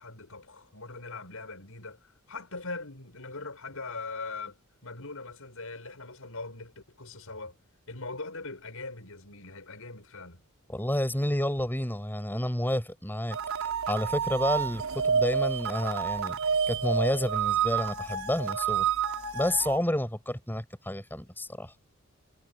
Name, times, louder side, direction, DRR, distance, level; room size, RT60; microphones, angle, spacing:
voice 1, 0.0-7.5 7.9-10.4, left 3 dB, 80° left, 6.2 m, -41 dB
voice 2, 10.7-16.4 16.7-18.9 19.3-21.7, left 1 dB, 10° left, 6.8 m, -30 dB
sound 1, 13.3-19.8, right 7 dB, 80° right, 4.2 m, -29 dB
head